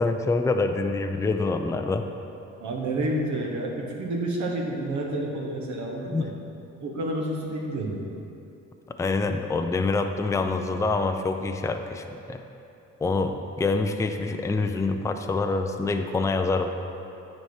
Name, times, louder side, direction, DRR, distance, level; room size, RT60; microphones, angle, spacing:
voice 1, 0.0-2.0 6.1-6.3 9.0-12.4 13.0-16.7, left 3 dB, 10° left, 6 dB, 0.4 m, -26 dB
voice 2, 2.6-6.3 6.8-8.0, right 1 dB, 70° right, 0 dB, 1.3 m, -29 dB
9.2 x 4.4 x 4.8 m, 2.8 s
cardioid pair, 90°, 30 cm